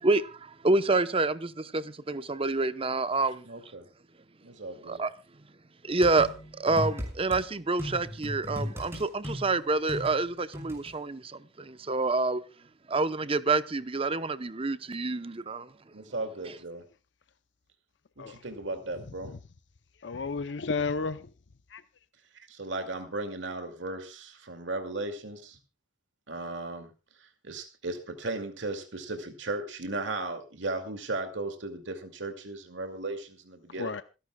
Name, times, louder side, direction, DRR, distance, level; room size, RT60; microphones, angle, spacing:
voice 1, 0.0-3.4 4.9-5.1 5.8-12.4 12.9-15.7, right 3 dB, 30° right, 0.8 m, -28 dB
voice 2, 3.4-3.9 4.4-5.0 15.9-16.8 18.2-19.3 22.5-25.6 26.3-26.9 27.2-33.9, right 2 dB, 85° right, 2.3 m, -36 dB
sound 1, 6.0-7.4 7.8-10.9, left 1 dB, 15° right, 6.4 m, -37 dB
voice 3, 20.0-21.3 21.7-21.8 33.8-34.0, left 4 dB, 70° left, 0.7 m, -32 dB
27.0 x 11.5 x 2.3 m
head